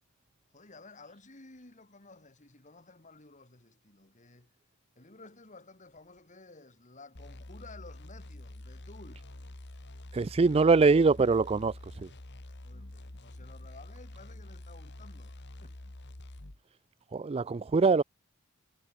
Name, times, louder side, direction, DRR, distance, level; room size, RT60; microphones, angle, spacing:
voice 1, 0.5-4.5 4.9-9.3 12.5-15.8, left 3 dB, 35° left, 2.7 m, -54 dB
sound 1, 7.1-16.6, left 1 dB, 55° left, 1.9 m, -47 dB
voice 2, 10.1-12.1 17.1-18.0, right 4 dB, 25° right, 0.4 m, -23 dB
head